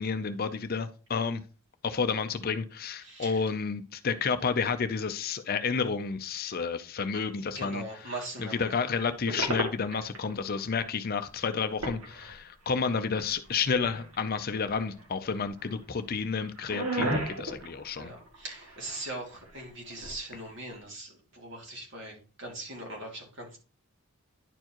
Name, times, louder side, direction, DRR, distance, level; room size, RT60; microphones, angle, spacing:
voice 1, 0.0-1.4 1.8-8.1 8.4-18.1, left 5 dB, 45° left, 0.5 m, -31 dB
voice 2, 3.0-3.4 7.1-7.2 7.5-8.7 18.0-23.6, right 2 dB, 55° right, 2.6 m, -41 dB
sound 1, 9.3-10.3 10.6-10.7 11.2-11.3 11.6-12.7 13.2-14.2 14.5-15.1 15.4-15.8 16.2-19.1 19.3-20.2, right 1 dB, 75° right, 2.1 m, -35 dB
10.5 x 4.5 x 3.0 m
head